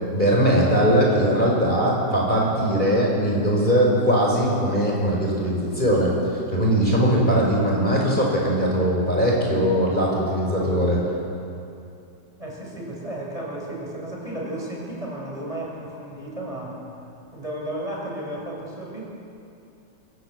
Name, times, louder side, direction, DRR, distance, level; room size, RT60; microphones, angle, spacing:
voice 1, 0.1-6.1 6.5-11.0, equal, 25° left, -3 dB, 6.0 m, -20 dB
voice 2, 12.4-16.8 17.3-19.0, right 1 dB, 20° right, -3 dB, 7.0 m, -33 dB
27.5 x 26.5 x 7.9 m, 2.7 s
omnidirectional pair, 1.9 m